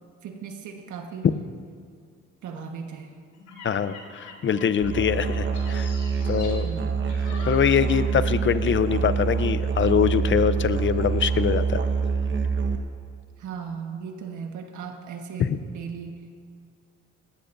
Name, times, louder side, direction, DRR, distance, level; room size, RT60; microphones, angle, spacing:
voice 1, 0.2-1.3 2.4-3.1 6.6-7.0 13.4-16.2, right 6 dB, 75° right, 3 dB, 1.4 m, -37 dB
sound 1, 3.3-8.3 8.5-8.8, left 3 dB, 80° left, 2.7 m, -44 dB
voice 2, 3.6-5.9 6.3-6.7 7.5-11.8 15.4-15.6, left 8 dB, 40° left, 13 dB, 0.7 m, -23 dB
Musical instrument, 4.8-12.8, right 5 dB, 40° right, 1.3 m, -26 dB
19.0 x 15.5 x 2.7 m, 2.2 s
cardioid pair, 90°, 30 cm